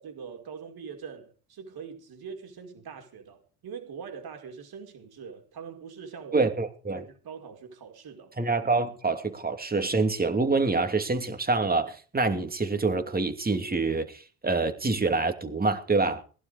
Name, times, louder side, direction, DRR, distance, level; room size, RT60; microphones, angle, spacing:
voice 1, 0.0-6.5 7.0-8.3, right 6 dB, 55° right, 5.3 m, -43 dB
voice 2, 6.3-7.0 8.4-16.2, right 3 dB, 20° right, 2.8 m, -26 dB
20.0 x 11.5 x 5.0 m
supercardioid pair, 75°, 43 cm